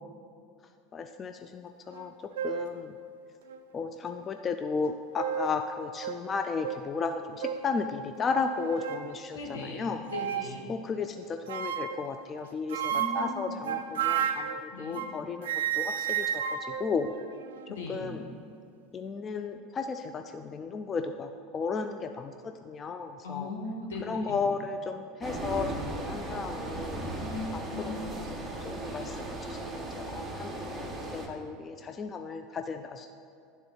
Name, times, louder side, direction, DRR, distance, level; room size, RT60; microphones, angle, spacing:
voice 1, 0.9-2.1 2.4-2.9 3.7-10.0 10.7-16.4 16.8-17.1 17.9-18.2 18.9-22.3 22.7-23.5 24.1-27.0 27.9-29.6 30.1-33.1, left 5 dB, 30° left, 6 dB, 0.3 m, -34 dB
sound 1, 1.9-2.0 2.4-2.8 3.5-3.6 4.9-5.6 6.0-6.2 6.6-6.8 7.4-7.7 8.4-9.1 10.1-10.5 11.5-12.1 12.7-15.2 15.4-17.8, right 9 dB, 85° right, 0.3 m, -32 dB
voice 2, 9.3-10.7 12.9-13.6 14.7-15.0 17.7-18.1 23.2-24.5 27.2-28.0, left 3 dB, 85° left, 0 dB, 1.3 m, -38 dB
sound 2, 25.2-31.3, right 2 dB, 15° right, 1.2 m, -37 dB
10.5 x 4.0 x 3.9 m, 2.4 s
hypercardioid pair, 90°, 0 cm